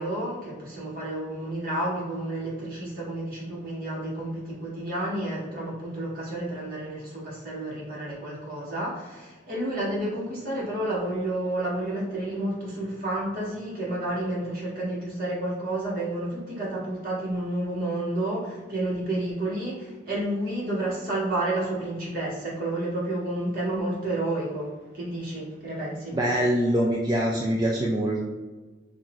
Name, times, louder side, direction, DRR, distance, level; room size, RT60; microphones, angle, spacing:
voice 1, 0.0-26.2, right 1 dB, 50° right, -7 dB, 1.5 m, -30 dB
voice 2, 26.1-28.2, right 1 dB, 20° right, -3 dB, 0.3 m, -24 dB
5.6 x 2.5 x 2.4 m, 1.3 s
head